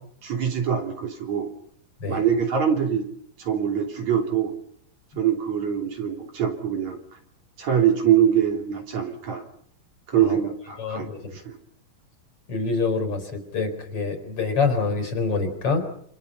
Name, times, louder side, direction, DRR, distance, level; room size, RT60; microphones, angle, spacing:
voice 1, 0.2-1.5 2.1-3.1 3.4-4.5 5.2-7.0 7.6-9.4 10.1-11.1 11.3-11.6, right 8 dB, 55° right, 3 dB, 4.3 m, -23 dB
voice 2, 10.8-11.3 12.5-15.8, left 4 dB, 45° left, 7 dB, 4.9 m, -26 dB
29.0 x 27.0 x 5.6 m, 0.66 s
omnidirectional pair, 3.9 m